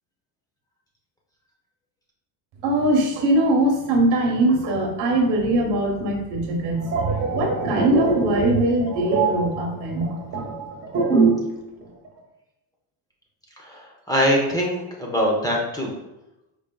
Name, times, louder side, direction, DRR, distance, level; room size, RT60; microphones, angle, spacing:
voice 1, 2.6-10.1, right 1 dB, 70° right, 2 dB, 1.2 m, -21 dB
sound 1, 6.6-11.6 11.8-12.1, right 4 dB, 35° right, 1.2 m, -23 dB
voice 2, 13.6-15.9, equal, 10° left, -2 dB, 0.7 m, -23 dB
4.9 x 3.4 x 2.3 m, 0.94 s
cardioid pair, 125°, 43 cm